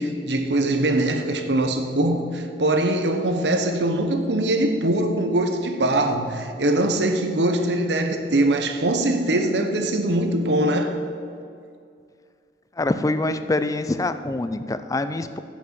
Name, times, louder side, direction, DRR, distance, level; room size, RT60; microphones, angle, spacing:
voice 1, 0.0-11.0, right 1 dB, 70° right, 6 dB, 1.0 m, -22 dB
voice 2, 12.8-15.4, left 2 dB, 20° left, 11 dB, 0.4 m, -25 dB
9.9 x 6.2 x 7.6 m, 2.3 s
head